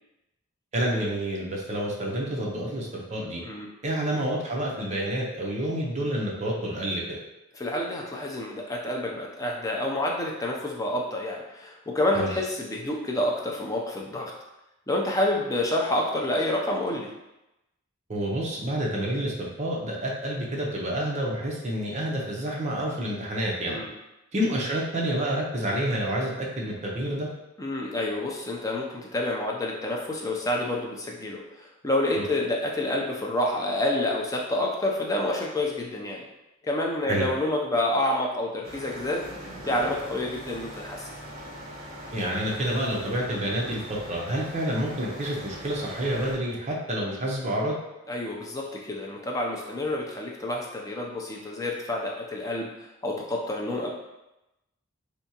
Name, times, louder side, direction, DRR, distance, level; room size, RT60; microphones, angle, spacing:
voice 1, 0.7-3.4 3.8-7.0 12.1-12.3 18.1-23.8 24.3-27.3 32.1-32.3 37.0-37.3 42.1-47.8, right 1 dB, 35° right, -2 dB, 0.6 m, -28 dB
voice 2, 7.5-14.3 14.9-17.1 23.6-23.9 27.6-36.2 36.6-39.3 39.6-41.1 48.1-53.9, left 1 dB, 15° left, -1 dB, 0.4 m, -28 dB
sound 1, 38.6-46.4, equal, 60° right, 0.9 m, -41 dB
3.4 x 2.7 x 2.8 m, 0.93 s
head